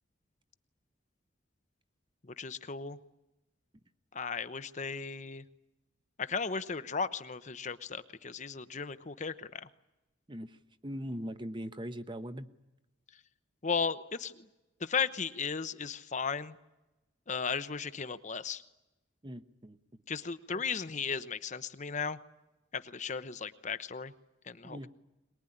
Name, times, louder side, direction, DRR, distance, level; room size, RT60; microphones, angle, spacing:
voice 1, 2.4-3.0 4.1-5.4 6.2-9.6 13.6-14.5 14.8-16.6 17.3-18.6 20.1-22.2 22.7-24.1 24.5-24.9, left 5 dB, 40° left, 12 dB, 0.9 m, -35 dB
voice 2, 10.8-12.5 19.2-19.8 20.5-20.6 24.6-24.9, equal, 25° right, 10 dB, 1.0 m, -40 dB
22.5 x 21.0 x 10.0 m, 0.97 s
head